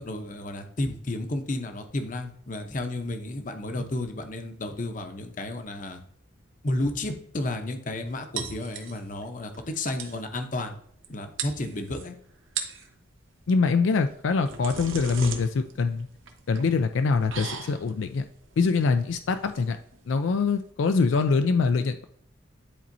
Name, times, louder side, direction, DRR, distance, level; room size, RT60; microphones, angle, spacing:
voice 1, 0.0-6.0 6.6-10.8 11.1-12.2, left 2 dB, 40° left, 6 dB, 0.8 m, -32 dB
sound 1, 8.4-9.2 9.5-9.6 9.8-10.2 11.0-11.1 11.4-12.0 12.4-12.9 14.1-20.7, right 6 dB, 80° right, 1.0 m, -38 dB
voice 2, 13.5-16.1 16.5-18.2 18.6-19.8 20.1-22.0, left 4 dB, 75° left, 9 dB, 0.4 m, -24 dB
10.0 x 4.2 x 2.7 m, 0.66 s
head